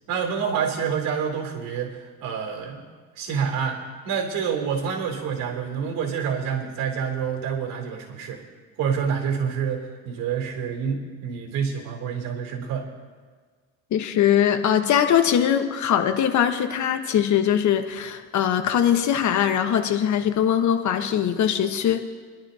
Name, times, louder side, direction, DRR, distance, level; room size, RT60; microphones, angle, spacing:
voice 1, 0.1-2.8 3.2-8.4 8.8-12.9, right 7 dB, 80° right, 1 dB, 3.2 m, -27 dB
voice 2, 13.9-22.0, left 9 dB, 60° left, 6 dB, 1.3 m, -21 dB
24.5 x 12.0 x 2.9 m, 1.5 s
cardioid pair, 110°, 33 cm